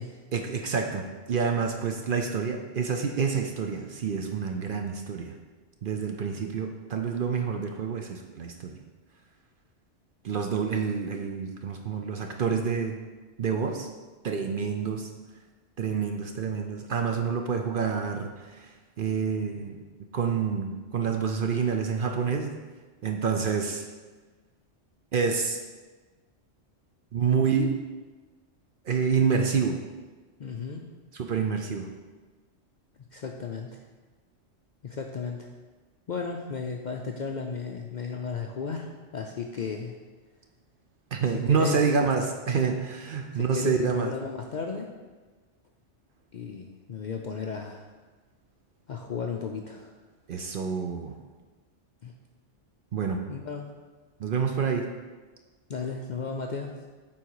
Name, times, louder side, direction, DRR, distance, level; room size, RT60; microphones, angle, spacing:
voice 1, 0.3-5.3 5.8-8.8 10.2-13.0 13.4-13.9 14.2-15.1 15.8-19.8 20.1-22.5 23.0-23.8 25.1-25.6 27.1-27.7 28.9-29.8 31.1-31.9 41.1-44.1 50.3-51.2 52.9-53.2 54.2-54.9, right 6 dB, 55° right, 4 dB, 0.7 m, -28 dB
voice 2, 30.4-30.9 33.1-33.8 34.8-35.5 36.1-39.9 41.5-41.9 43.3-44.9 46.3-47.9 48.9-50.0 52.0-52.1 53.3-53.7 55.7-56.7, left 5 dB, 55° left, 2 dB, 0.5 m, -34 dB
8.7 x 3.9 x 4.7 m, 1.3 s
omnidirectional pair, 1.2 m